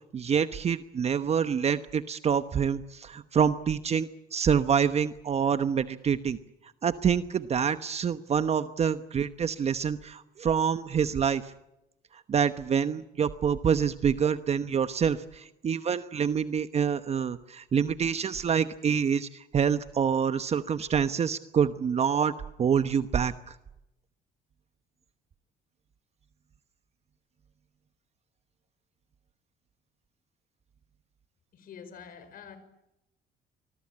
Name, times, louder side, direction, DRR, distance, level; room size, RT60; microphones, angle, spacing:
voice 1, 0.1-6.4 6.8-11.5 12.3-22.3 22.6-23.6, right 7 dB, 40° right, 11 dB, 1.0 m, -26 dB
voice 2, 31.5-32.6, left 7 dB, 55° left, 12 dB, 5.4 m, -46 dB
25.0 x 20.5 x 8.7 m, 0.90 s
cardioid pair, 110°, 17 cm